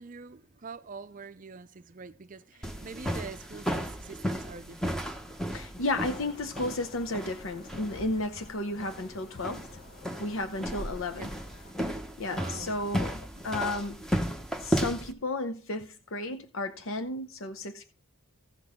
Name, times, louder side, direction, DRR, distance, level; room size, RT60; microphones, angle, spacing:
voice 1, 0.0-5.4 11.2-11.3 12.3-12.8, right 5 dB, 40° right, 0.5 m, -45 dB
sound 1, 2.6-15.1, equal, 5° left, 0.9 m, -34 dB
voice 2, 5.5-9.7 10.2-11.3 12.2-13.1 13.4-14.0 14.6-17.8, left 2 dB, 70° left, 0.8 m, -33 dB
sound 2, 5.9-11.7, equal, 45° left, 1.1 m, -47 dB
16.0 x 6.1 x 3.6 m
head